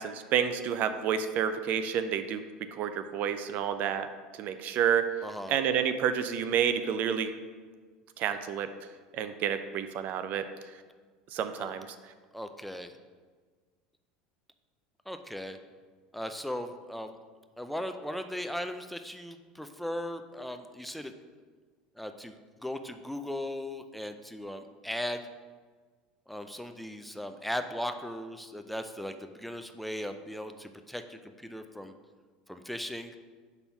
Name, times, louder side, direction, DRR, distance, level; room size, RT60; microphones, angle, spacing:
voice 1, 0.0-4.1 4.4-5.1 5.5-7.3 8.2-8.7 9.1-10.5 11.3-11.9, right 8 dB, 55° right, 10 dB, 0.5 m, -29 dB
voice 2, 5.2-5.6 11.6-11.7 12.3-12.9 15.1-15.6 16.1-17.2 17.6-21.1 22.0-25.3 26.3-31.9 32.5-33.1, left 1 dB, ahead, 8 dB, 0.4 m, -38 dB
5.3 x 4.2 x 5.8 m, 1.5 s
hypercardioid pair, 90°, 3 cm